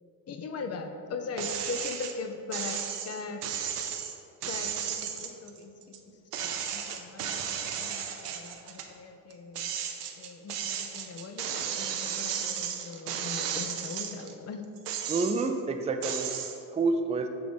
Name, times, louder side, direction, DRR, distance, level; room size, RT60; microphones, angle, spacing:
voice 1, 0.3-3.5 4.4-9.7 10.2-14.6, left 4 dB, 35° left, 7 dB, 0.6 m, -40 dB
sound 1, 1.4-2.1 2.5-6.0 6.3-8.9 9.3-14.3 14.8-15.6 16.0-16.6, right 8 dB, 85° right, 0.7 m, -34 dB
voice 2, 15.1-16.4 16.7-17.3, right 3 dB, 15° right, 5 dB, 0.5 m, -28 dB
6.8 x 3.8 x 5.1 m, 2.7 s
hypercardioid pair, 65°, 45 cm